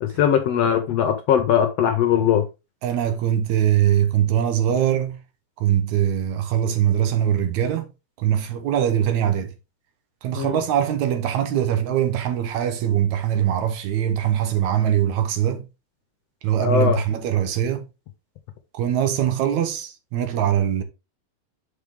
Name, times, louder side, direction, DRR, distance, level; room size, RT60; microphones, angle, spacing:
voice 1, 0.0-2.5 10.4-10.6 16.6-17.0, left 9 dB, 70° left, 1.7 m, -20 dB
voice 2, 2.8-5.2 5.6-7.9 8.2-9.5 10.2-15.6 16.4-17.8 18.7-20.8, right 10 dB, 75° right, 2.2 m, -22 dB
6.8 x 5.0 x 3.5 m
omnidirectional pair, 3.4 m